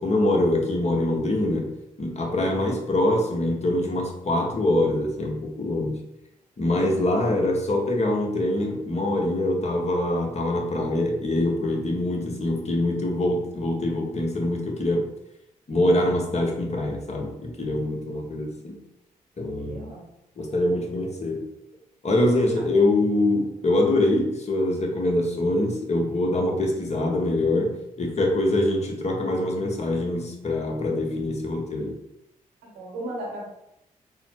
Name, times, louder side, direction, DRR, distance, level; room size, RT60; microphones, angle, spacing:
voice 1, 0.0-1.7 2.0-6.0 6.6-15.1 15.7-18.8 19.4-19.9 20.4-21.5 22.0-32.0, left 1 dB, 45° left, 1 dB, 1.1 m, -24 dB
voice 2, 19.7-20.1 22.7-22.9 32.6-33.4, right 1 dB, 85° right, -3 dB, 1.1 m, -36 dB
3.9 x 2.1 x 4.3 m, 0.84 s
supercardioid pair, 45°, 16 cm